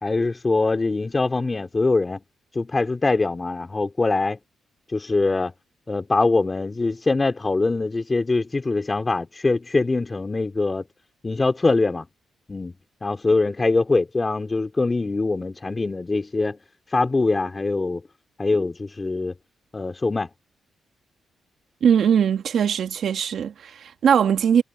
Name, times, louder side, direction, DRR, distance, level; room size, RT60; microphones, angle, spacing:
voice 1, 0.0-2.2 2.5-4.4 4.9-5.5 5.9-10.8 11.2-12.0 12.5-12.7 13.0-16.6 16.9-18.0 18.4-19.3 19.7-20.3, left 3 dB, 25° left, 2.7 m, -23 dB
voice 2, 21.8-24.6, right 8 dB, 70° right, 1.6 m, -20 dB
cardioid pair, 85°, 0 cm